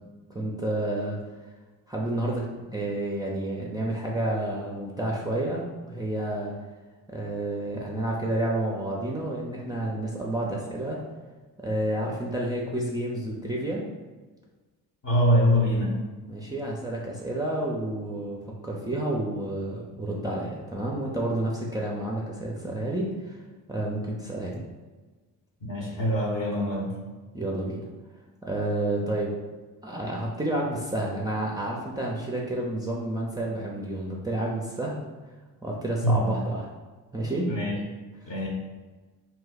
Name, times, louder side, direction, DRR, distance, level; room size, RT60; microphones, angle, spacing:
voice 1, 0.3-1.2 1.9-6.6 7.1-11.0 11.6-13.9 16.3-23.4 23.7-24.6 27.3-27.9 28.4-29.3 29.8-35.0 35.6-36.7 37.1-37.5, right 1 dB, 10° right, -3 dB, 0.5 m, -30 dB
voice 2, 15.0-16.0 25.6-27.0 36.0-36.3 37.5-37.8 38.3-38.5, equal, 45° left, -2 dB, 1.0 m, -24 dB
2.7 x 2.1 x 4.0 m, 1.3 s
supercardioid pair, 55°, 44 cm